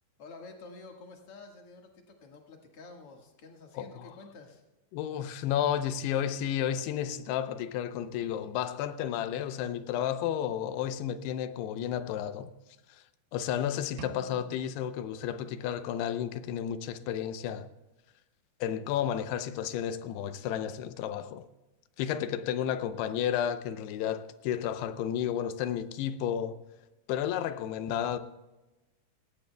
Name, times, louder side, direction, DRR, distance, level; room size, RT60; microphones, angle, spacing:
voice 1, 0.2-4.6, left 3 dB, 50° left, 2.0 m, -49 dB
voice 2, 3.8-4.1 4.9-12.5 12.9-13.0 13.3-17.7 18.6-21.5 22.0-26.6 27.1-28.2, left 10 dB, 90° left, 2.8 m, -32 dB
sound 1, 14.0-15.9, right 7 dB, 85° right, 2.7 m, -49 dB
18.5 x 17.0 x 2.3 m
omnidirectional pair, 4.6 m